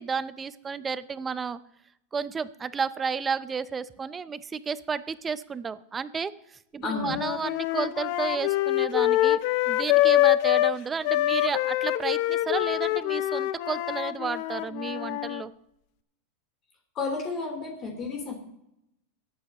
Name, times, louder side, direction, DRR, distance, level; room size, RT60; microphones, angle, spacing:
voice 1, 0.0-1.6 2.1-9.4 9.7-15.5, right 5 dB, 15° right, 15 dB, 0.5 m, -32 dB
voice 2, 6.8-7.2 17.0-18.3, left 3 dB, 35° left, 2 dB, 3.5 m, -32 dB
sound 1, 6.9-10.7 11.0-15.4, left 16 dB, 55° left, 0.6 m, -25 dB
23.5 x 9.2 x 3.0 m, 0.80 s
supercardioid pair, 145°, 0 cm